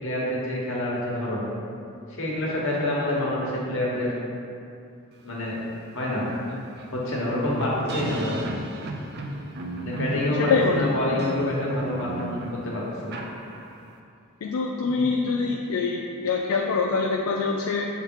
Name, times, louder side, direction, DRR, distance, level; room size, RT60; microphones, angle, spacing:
voice 1, 0.0-1.4 2.1-4.1 5.2-5.6 5.9-6.2 6.9-8.4 9.8-13.2 14.8-14.9, left 1 dB, 65° left, -5 dB, 1.5 m, -27 dB
sound 1, 5.5-5.6 5.9-14.0, right 2 dB, 50° right, 0.5 m, -35 dB
voice 2, 10.4-10.9 14.4-17.9, left 4 dB, 85° left, 0 dB, 0.4 m, -24 dB
6.9 x 3.5 x 4.7 m, 2.5 s
head